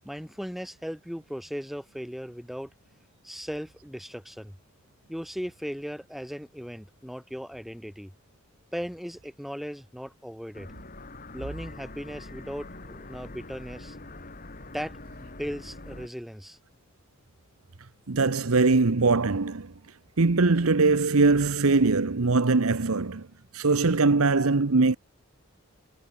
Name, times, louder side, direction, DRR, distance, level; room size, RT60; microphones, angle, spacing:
voice 1, 0.0-2.7 3.2-4.5 5.1-8.1 8.7-10.7 11.3-14.0 14.7-14.9 15.2-16.6, equal, ahead, 7.5 m, -37 dB
sound 1, 10.5-16.1, left 2 dB, 40° left, 2.8 m, -44 dB
voice 2, 18.1-19.7 20.2-23.3 23.5-25.0, right 3 dB, 75° right, 1.0 m, -22 dB
head